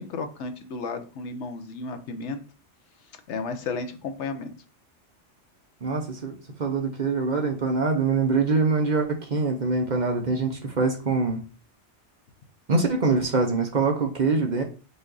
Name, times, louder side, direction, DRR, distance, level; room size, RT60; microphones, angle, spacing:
voice 1, 0.0-2.4 3.3-4.5, left 4 dB, 75° left, 8 dB, 1.0 m, -33 dB
voice 2, 5.8-11.4 12.7-14.6, right 4 dB, 45° right, 3 dB, 0.7 m, -24 dB
5.4 x 2.5 x 3.8 m, 0.35 s
omnidirectional pair, 1.2 m